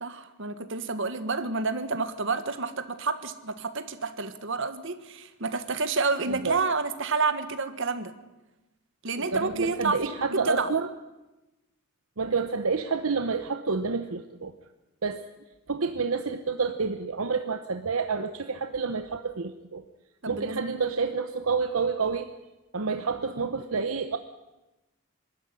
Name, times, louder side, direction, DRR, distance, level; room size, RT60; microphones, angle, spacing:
voice 1, 0.0-8.1 9.0-10.7 20.2-20.6, right 4 dB, 60° right, 10 dB, 1.6 m, -29 dB
voice 2, 9.2-10.9 12.2-14.5 15.0-15.3 15.7-19.8 20.3-22.3 22.7-24.2, right 5 dB, 75° right, 8 dB, 1.0 m, -29 dB
23.5 x 13.0 x 9.9 m, 1.0 s
head